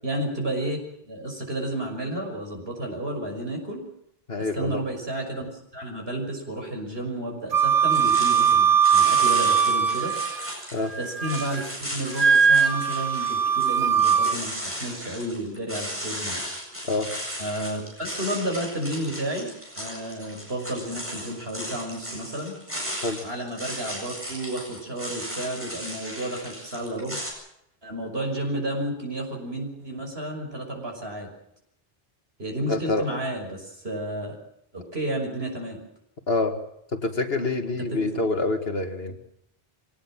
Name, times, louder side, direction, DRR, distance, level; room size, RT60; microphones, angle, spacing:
voice 1, 0.0-0.8 1.0-3.8 4.4-10.1 11.0-11.6 11.9-16.4 17.4-19.5 19.8-22.6 23.2-27.2 27.8-31.3 32.4-34.4 34.7-35.8 37.7-38.2 39.1-39.2, right 1 dB, 70° right, 2 dB, 6.5 m, -31 dB
voice 2, 4.3-4.8 10.7-10.9 16.9-17.1 23.0-23.2 32.7-33.1 36.3-36.6 36.9-39.1, left 2 dB, 70° left, 6 dB, 2.4 m, -26 dB
Wind instrument woodwind instrument, 7.5-10.5 10.9-11.6 12.2-14.4, right 7 dB, 40° right, 1.2 m, -21 dB
sound 1, 7.9-27.3, equal, 10° right, 8.1 m, -36 dB
24.0 x 18.5 x 7.6 m, 0.75 s
omnidirectional pair, 1.0 m